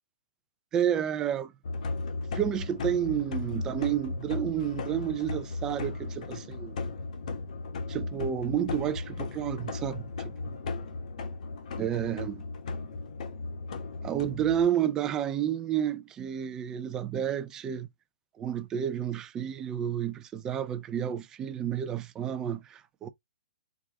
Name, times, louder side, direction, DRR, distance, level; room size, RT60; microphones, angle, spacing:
voice 1, 0.7-1.5 2.3-6.8 7.9-10.1 10.4-10.5 11.8-12.4 14.0-17.9 18.4-23.1, right 10 dB, 10° right, 0.4 m, -30 dB
sound 1, 1.6-14.7, left 3 dB, 50° left, 1.2 m, -36 dB
4.7 x 2.4 x 3.6 m
hypercardioid pair, 170°, 5 cm